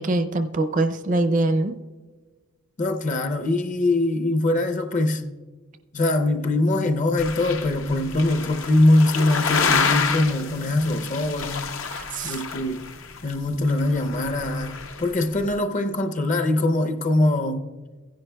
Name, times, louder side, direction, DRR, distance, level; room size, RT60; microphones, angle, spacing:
voice 1, 0.0-1.7 11.9-12.4, right 2 dB, 40° right, 0.5 m, -23 dB
voice 2, 2.8-5.2 5.9-11.7 12.2-12.8 13.2-17.6, left 2 dB, 40° left, 0.6 m, -22 dB
sound 1, 7.2-15.5, left 5 dB, 80° left, 0.8 m, -29 dB
16.0 x 10.5 x 2.2 m
head